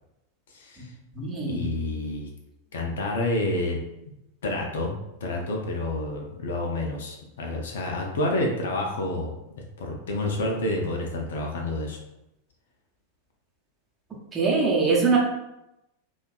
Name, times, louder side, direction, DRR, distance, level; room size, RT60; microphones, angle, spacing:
voice 1, 0.5-0.9 1.4-2.3 2.7-3.8 4.4-4.9 5.2-9.3 9.8-12.0, left 2 dB, 60° left, 0 dB, 0.4 m, -29 dB
voice 2, 1.1-1.6 14.3-15.2, right 4 dB, 20° right, -3 dB, 0.7 m, -22 dB
2.6 x 2.3 x 2.3 m, 0.89 s
figure-of-eight pair, 90°, 0 cm